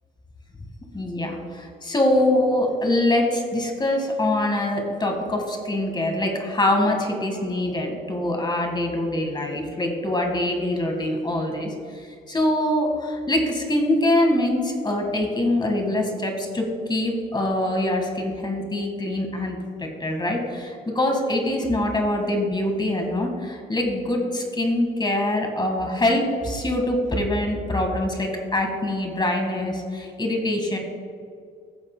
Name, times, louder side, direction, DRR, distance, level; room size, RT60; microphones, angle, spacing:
voice 1, 0.9-11.7 12.3-30.8, left 1 dB, 20° left, 2 dB, 1.7 m, -24 dB
15.5 x 7.1 x 2.2 m, 2.3 s
cardioid pair, 90°, 20 cm